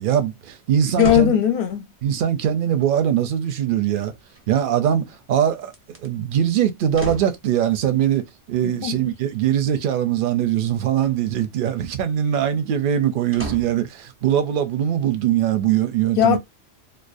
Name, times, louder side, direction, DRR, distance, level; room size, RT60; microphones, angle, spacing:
voice 1, 0.0-1.3 2.0-4.1 4.5-5.7 6.0-16.4, right 10 dB, 60° right, 0.6 m, -21 dB
voice 2, 1.0-1.9 8.6-9.0 16.2-16.4, left 11 dB, 60° left, 0.7 m, -18 dB
sound 1, 1.0-1.5 3.9-4.7 5.6-6.1 6.9-7.4 11.0-11.5 13.3-13.9 14.5-14.6, right 1 dB, 20° right, 0.3 m, -34 dB
2.4 x 2.0 x 2.4 m
omnidirectional pair, 1.2 m